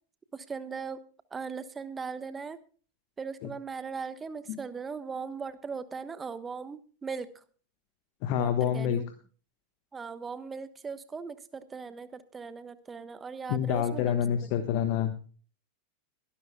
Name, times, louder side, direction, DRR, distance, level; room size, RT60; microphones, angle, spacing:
voice 1, 0.3-1.0 1.3-2.6 3.2-7.4 8.3-9.1 9.9-14.6, right 5 dB, 15° right, 14 dB, 1.2 m, -39 dB
voice 2, 8.2-9.0 13.5-15.1, left 9 dB, 45° left, 8 dB, 1.3 m, -27 dB
22.5 x 11.5 x 2.3 m, 0.40 s
figure-of-eight pair, 90°, 0 cm